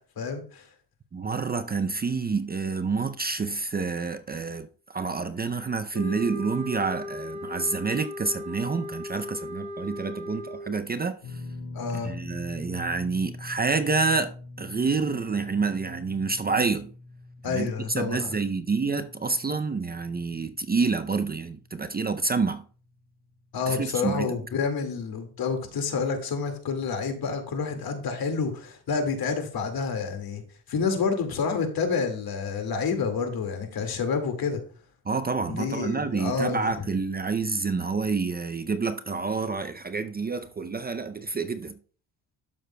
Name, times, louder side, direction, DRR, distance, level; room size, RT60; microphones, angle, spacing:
voice 1, 0.2-0.7 11.7-12.1 17.4-18.4 23.5-30.4 30.7-34.6 35.5-36.7, left 5 dB, 60° left, 2.0 m, -29 dB
voice 2, 1.1-11.4 12.0-16.9 17.4-22.6 23.7-24.3 35.1-41.7, right 4 dB, 25° right, 0.5 m, -28 dB
sound 1, 5.9-10.8, left 1 dB, 40° left, 1.7 m, -37 dB
sound 2, 11.2-23.5 23.7-24.0 25.6-25.7, left 2 dB, 85° left, 1.6 m, -44 dB
12.5 x 6.7 x 2.2 m
cardioid pair, 95°, 40 cm